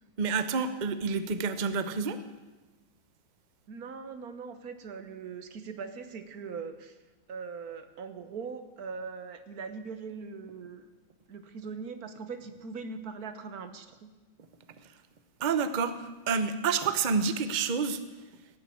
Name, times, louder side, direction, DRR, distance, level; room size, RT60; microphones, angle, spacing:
voice 1, 0.2-2.2 14.7-15.0 15.4-18.0, right 5 dB, 75° right, 11 dB, 0.4 m, -29 dB
voice 2, 3.7-7.0 7.3-10.8 11.3-14.1, right 5 dB, 55° right, 10 dB, 1.4 m, -41 dB
17.5 x 9.1 x 8.5 m, 1.2 s
omnidirectional pair, 2.2 m